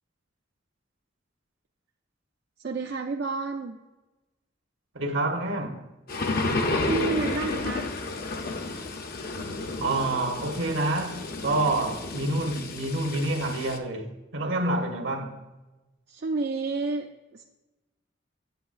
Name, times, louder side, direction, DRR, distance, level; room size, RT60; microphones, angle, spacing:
voice 1, 2.6-3.8 6.5-7.9 14.5-14.8 16.1-17.4, right 4 dB, 55° right, 0.4 m, -31 dB
voice 2, 4.9-5.9 9.8-15.4, right 2 dB, 75° right, 1.2 m, -28 dB
sound 1, 6.1-13.8, left 3 dB, 50° left, 0.7 m, -31 dB
8.1 x 8.0 x 2.5 m
head